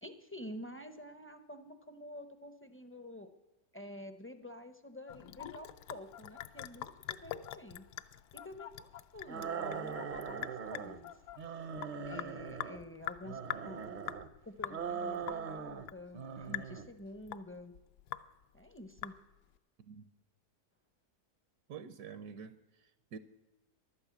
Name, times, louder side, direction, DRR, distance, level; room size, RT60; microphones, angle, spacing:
voice 1, 0.0-3.3 3.7-7.8 8.3-11.1 12.1-14.0 14.4-17.7 18.5-19.1, left 1 dB, 20° left, 9 dB, 0.3 m, -49 dB
Sink (filling or washing) / Drip, 5.1-19.6, left 12 dB, 80° left, 1.1 m, -45 dB
sound 1, 5.1-12.2, left 12 dB, 65° left, 0.9 m, -53 dB
sound 2, 9.3-11.0 11.4-12.8 13.2-14.3 14.7-15.9 16.1-16.9, right 6 dB, 50° right, 0.5 m, -41 dB
voice 2, 21.7-23.2, right 6 dB, 75° right, 12 dB, 1.2 m, -48 dB
12.0 x 9.8 x 8.4 m, 1.1 s
omnidirectional pair, 1.7 m